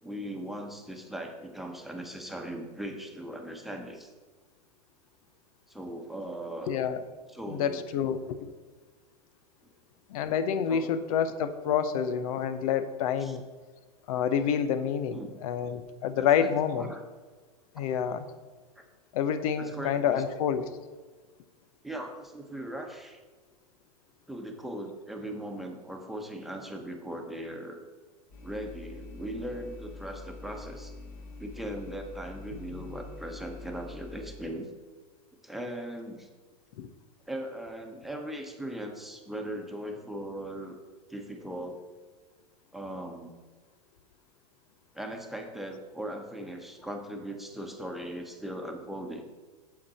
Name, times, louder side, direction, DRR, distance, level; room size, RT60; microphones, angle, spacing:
voice 1, 0.0-4.1 5.7-6.8 7.3-7.8 10.7-10.9 13.2-13.4 15.0-15.3 16.1-16.5 16.8-17.0 18.8-18.9 19.6-20.2 21.8-23.2 24.3-27.8 28.4-30.9 31.4-34.7 35.4-36.3 37.3-40.8 41.1-41.8 42.7-43.3 44.9-49.2, right 1 dB, ahead, 2 dB, 1.2 m, -39 dB
voice 2, 6.7-7.0 7.5-8.4 10.1-13.4 14.1-16.9 17.7-18.3 19.1-20.7 32.5-33.0 36.8-36.9, left 8 dB, 60° left, 12 dB, 0.8 m, -28 dB
sound 1, 28.3-34.4, left 3 dB, 45° left, 2.3 m, -45 dB
8.7 x 7.8 x 4.2 m, 1.4 s
hypercardioid pair, 95°, 20 cm